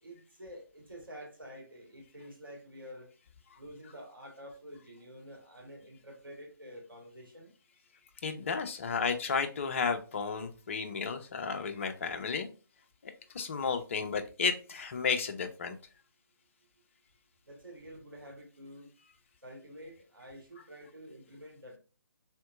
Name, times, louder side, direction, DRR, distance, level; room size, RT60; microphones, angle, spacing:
voice 1, 0.0-3.1 3.6-7.5 17.5-18.9 19.4-21.8, equal, 70° right, 1.6 m, -49 dB
voice 2, 8.2-12.5 13.3-15.8, left 5 dB, 35° left, 0.5 m, -33 dB
4.3 x 3.7 x 2.4 m
figure-of-eight pair, 140°, 12 cm